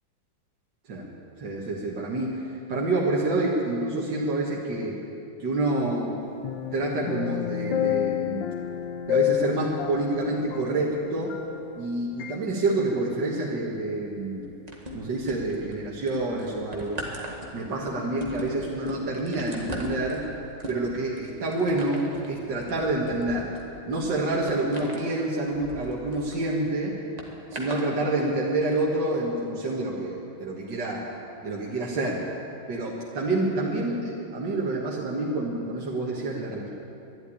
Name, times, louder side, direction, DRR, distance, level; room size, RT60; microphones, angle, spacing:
voice 1, 1.4-5.0 5.4-6.1 6.7-8.5 9.1-11.3 11.7-14.5 14.9-17.0 17.5-20.2 20.7-23.5 23.9-27.0 27.5-31.0 31.4-32.2 32.7-36.7, right 2 dB, 65° right, -4 dB, 2.3 m, -28 dB
sound 1, 6.4-11.9 12.2-12.4, left 10 dB, 75° left, 1.7 m, -29 dB
sound 2, 14.7-15.7 16.1-26.4 27.2-27.9 28.6-28.7, equal, 20° right, 1.7 m, -39 dB
12.0 x 11.5 x 9.8 m, 2.7 s
omnidirectional pair, 2.1 m